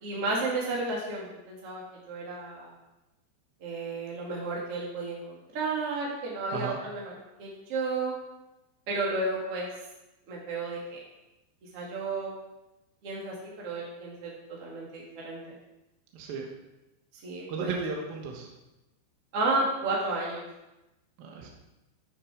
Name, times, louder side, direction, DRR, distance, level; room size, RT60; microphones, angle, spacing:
voice 1, 0.0-2.7 3.6-7.1 7.4-8.1 8.9-9.7 10.3-11.0 11.7-12.3 13.0-15.5 17.2-17.8 19.3-20.4, right 3 dB, 55° right, -4 dB, 1.7 m, -32 dB
voice 2, 16.1-16.5 17.5-18.5 21.2-21.5, right 4 dB, 70° right, 1 dB, 2.3 m, -35 dB
14.5 x 6.8 x 4.7 m, 0.98 s
omnidirectional pair, 5.9 m